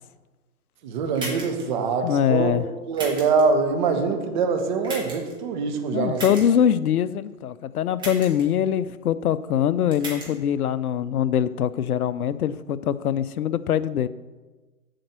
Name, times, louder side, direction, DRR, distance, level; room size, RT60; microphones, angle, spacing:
voice 1, 0.8-2.5 2.9-6.2, right 4 dB, 30° right, 5 dB, 0.9 m, -24 dB
sound 1, 1.2-1.6 2.9-3.4 4.8-5.3 6.2-6.4 8.0-8.4 9.9-10.3, right 2 dB, 10° right, 1.6 m, -34 dB
voice 2, 2.0-2.6 5.9-14.1, left 9 dB, 65° left, 15 dB, 0.5 m, -23 dB
7.7 x 4.5 x 6.6 m, 1.3 s
hypercardioid pair, 140°, 47 cm